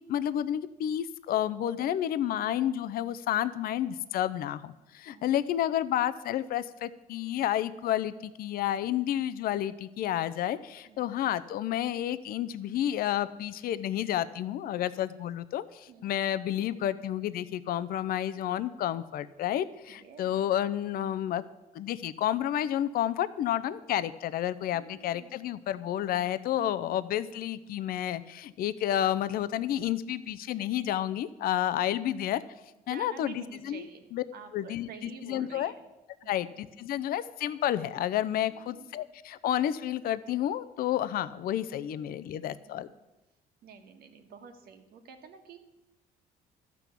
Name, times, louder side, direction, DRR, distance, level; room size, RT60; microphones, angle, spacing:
voice 1, 0.1-21.4 21.7-32.4 32.9-33.8 34.1-34.2 34.5-34.9 35.2-35.7 36.3-42.9, left 11 dB, 60° left, 14 dB, 0.6 m, -30 dB
voice 2, 2.4-2.7 5.1-5.4 10.8-11.2 14.7-14.9 15.9-16.2 19.9-20.4 24.7-25.3 26.5-26.8 32.9-34.1 34.3-35.8 36.2-36.5 38.5-38.9 42.1-42.8 43.6-45.6, right 6 dB, 65° right, 6 dB, 1.6 m, -50 dB
13.0 x 6.0 x 8.3 m, 0.99 s
cardioid pair, 110°, 17 cm